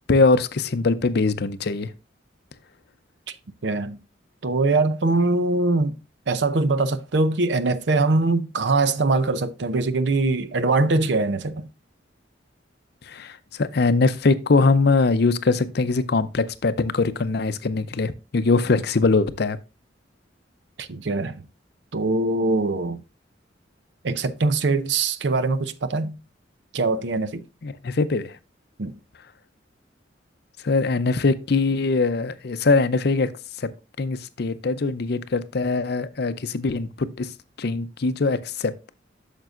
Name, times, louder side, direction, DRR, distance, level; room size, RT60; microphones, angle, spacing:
voice 1, 0.1-1.9 13.0-19.6 27.6-28.4 30.6-33.3 33.6-33.7 34.0-37.3 37.6-38.9, left 3 dB, 55° left, 0.5 m, -22 dB
voice 2, 3.6-4.0 4.4-5.9 6.3-11.7 20.8-21.4 21.9-23.0 24.0-26.2 26.7-27.4 28.8-28.9, right 3 dB, 65° right, 0.6 m, -22 dB
9.1 x 6.6 x 2.5 m
head